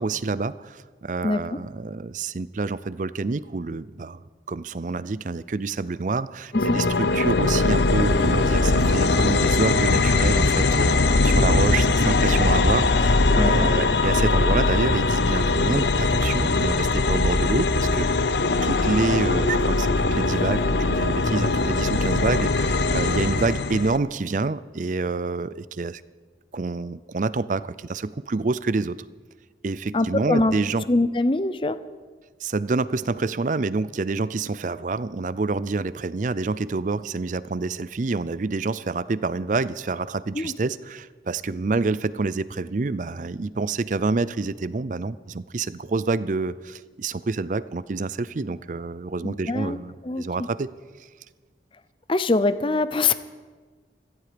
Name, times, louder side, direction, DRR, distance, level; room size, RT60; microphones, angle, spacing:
voice 1, 0.0-4.2 4.5-18.1 18.6-26.0 26.5-29.0 29.6-30.8 32.4-50.7, right 3 dB, 45° right, 17 dB, 0.5 m, -27 dB
voice 2, 1.2-1.6 6.5-6.8 13.4-13.7 29.9-30.5 30.9-31.8 40.3-40.5 49.2-49.8 50.0-50.5 52.1-53.1, left 2 dB, 30° left, 14 dB, 0.6 m, -23 dB
sound 1, 6.5-24.0, left 3 dB, 70° left, 0.7 m, -21 dB
17.0 x 14.5 x 5.1 m, 1.4 s
head